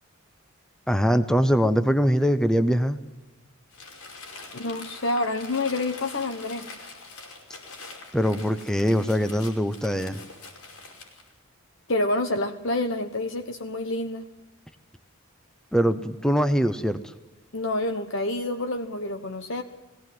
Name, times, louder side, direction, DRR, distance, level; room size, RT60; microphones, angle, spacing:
voice 1, 0.9-3.0 8.1-10.2 15.7-17.1, equal, 5° left, 9 dB, 0.7 m, -22 dB
Crumpling crinkling, 3.7-11.3, left 3 dB, 85° left, 5.4 m, -44 dB
voice 2, 4.5-6.7 11.9-14.2 17.5-19.6, left 2 dB, 55° left, 6 dB, 1.1 m, -28 dB
21.5 x 17.5 x 7.6 m, 1.1 s
head